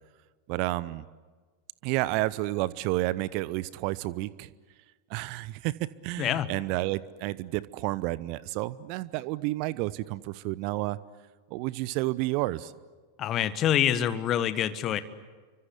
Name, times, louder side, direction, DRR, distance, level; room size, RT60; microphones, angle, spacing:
voice 1, 0.5-1.0 1.8-4.5 5.1-5.7 6.0-11.0 11.5-12.7, right 19 dB, 45° right, 19 dB, 0.9 m, -30 dB
voice 2, 6.2-6.5 13.2-15.0, left 10 dB, 30° left, 14 dB, 1.6 m, -26 dB
29.5 x 24.5 x 8.2 m, 1.4 s
figure-of-eight pair, 90°, 0 cm